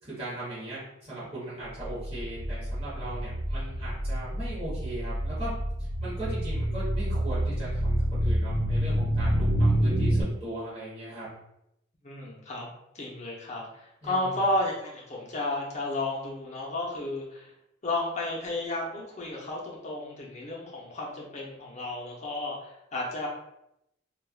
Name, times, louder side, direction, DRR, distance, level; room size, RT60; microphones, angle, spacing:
voice 1, 0.0-5.5 6.0-11.3 14.0-14.4, right 1 dB, 30° right, -10 dB, 1.2 m, -38 dB
sound 1, 1.8-10.2, equal, 85° right, 0.9 m, -28 dB
voice 2, 12.0-12.7 12.9-17.5 17.8-23.3, left 2 dB, 35° left, -3 dB, 0.7 m, -32 dB
3.4 x 2.3 x 2.4 m, 0.82 s
head